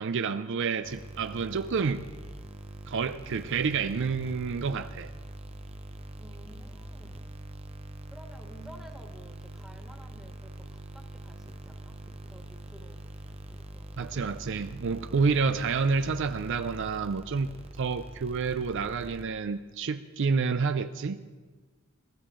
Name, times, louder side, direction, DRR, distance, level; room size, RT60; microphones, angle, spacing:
voice 1, 0.0-2.0 2.9-5.1 14.0-17.5 17.8-21.2, right 5 dB, 55° right, 0.4 m, -29 dB
sound 1, 0.8-19.6, right 1 dB, 30° right, 0.8 m, -44 dB
voice 2, 6.2-7.3 8.1-14.2, equal, ahead, 1.6 m, -53 dB
20.5 x 14.5 x 3.8 m
head